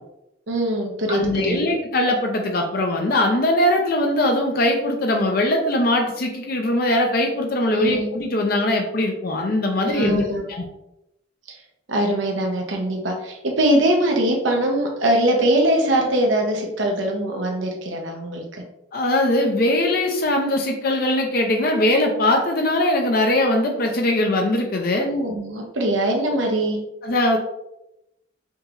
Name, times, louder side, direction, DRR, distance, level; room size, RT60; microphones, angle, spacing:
voice 1, 0.5-1.6 7.7-8.1 9.8-10.5 11.5-11.6 11.9-18.4 25.0-26.8, right 1 dB, 90° right, 1 dB, 0.8 m, -22 dB
voice 2, 1.1-10.2 10.5-10.6 18.9-25.1 27.0-27.4, left 1 dB, 50° left, 2 dB, 0.5 m, -21 dB
5.1 x 2.9 x 2.5 m, 0.87 s
head